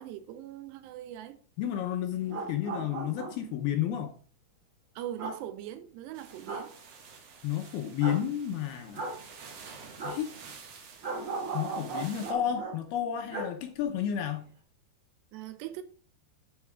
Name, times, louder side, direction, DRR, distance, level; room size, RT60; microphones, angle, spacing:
voice 1, 0.0-1.4 5.0-6.7 15.3-15.8, right 12 dB, 80° right, 2.7 m, -41 dB
voice 2, 1.6-4.1 7.4-9.1 10.0-10.3 11.5-14.5, left 10 dB, 75° left, 2.4 m, -31 dB
sound 1, 2.1-3.5 5.2-5.4 6.5-6.7 8.0-8.2 8.9-9.2 10.0-10.2 11.0-12.7 13.3-13.5 13.8-13.9, right 3 dB, 40° right, 4.0 m, -36 dB
sound 2, 6.1-12.3, right 5 dB, 60° right, 1.6 m, -50 dB
12.5 x 5.3 x 4.8 m
omnidirectional pair, 5.2 m